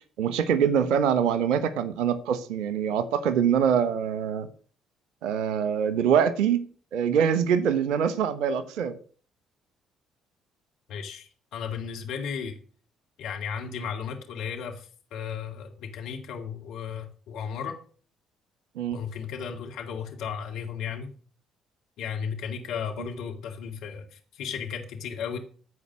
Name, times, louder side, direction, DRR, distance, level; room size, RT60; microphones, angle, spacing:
voice 1, 0.2-4.5 5.2-6.6 6.9-9.0 18.8-19.0, right 8 dB, 65° right, 14 dB, 1.1 m, -24 dB
voice 2, 10.9-12.6 13.2-17.8 18.9-21.1 22.0-25.4, left 7 dB, 65° left, 3 dB, 2.2 m, -35 dB
14.5 x 4.9 x 7.5 m, 0.42 s
figure-of-eight pair, 45°, 0 cm